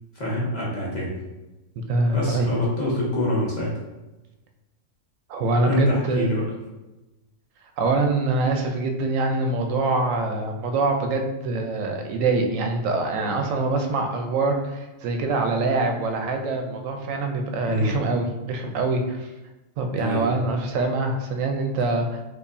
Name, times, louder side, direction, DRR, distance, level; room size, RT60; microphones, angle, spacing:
voice 1, 0.1-1.2 2.1-3.7 5.6-6.4 17.6-18.1 20.0-20.3, left 1 dB, 40° left, -5 dB, 0.8 m, -25 dB
voice 2, 1.8-2.6 5.3-6.3 7.8-19.3 19.8-22.2, right 3 dB, 85° right, 4 dB, 1.0 m, -24 dB
4.7 x 2.5 x 2.6 m, 1.1 s
omnidirectional pair, 1.3 m